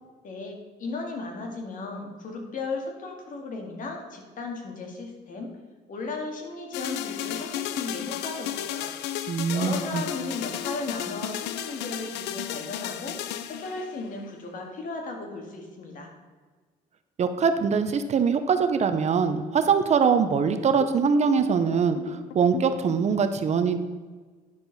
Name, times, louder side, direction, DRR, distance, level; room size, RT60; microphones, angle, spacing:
voice 1, 0.2-5.5 5.9-8.9 9.5-13.2 13.5-16.1, left 3 dB, 50° left, 2 dB, 2.0 m, -35 dB
sound 1, 6.7-14.3 20.8-22.9, left 11 dB, 90° left, 0.5 m, -34 dB
voice 2, 9.3-10.0 17.2-23.8, right 6 dB, 40° right, 9 dB, 0.7 m, -23 dB
9.8 x 6.5 x 4.1 m, 1.4 s
cardioid pair, 110°, 17 cm